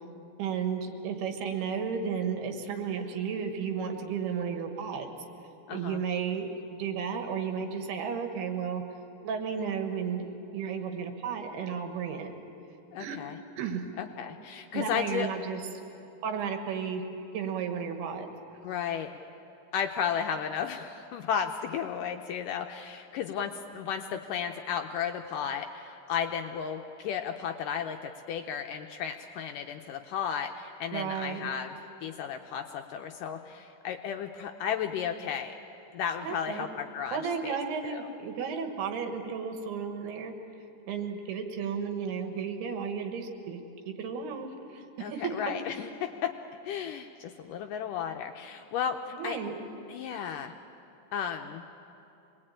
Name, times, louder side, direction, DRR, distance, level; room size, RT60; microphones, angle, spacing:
voice 1, 0.4-5.1 5.7-8.8 9.2-12.3 13.0-13.2 13.6-13.9 14.7-15.6 16.2-17.0 17.3-18.3 30.9-31.5 36.2-36.7 37.1-40.3 40.9-43.6 43.9-45.3 49.1-49.7, right 6 dB, 90° right, 5 dB, 3.6 m, -33 dB
voice 2, 5.7-6.0 12.9-13.4 14.0-15.3 18.6-19.1 19.7-31.7 32.0-35.6 35.9-37.2 37.4-37.6 37.8-38.1 45.0-46.3 46.6-49.4 49.9-50.5 51.1-51.6, left 8 dB, 80° left, 5 dB, 2.0 m, -34 dB
26.0 x 20.0 x 8.9 m, 2.9 s
omnidirectional pair, 4.5 m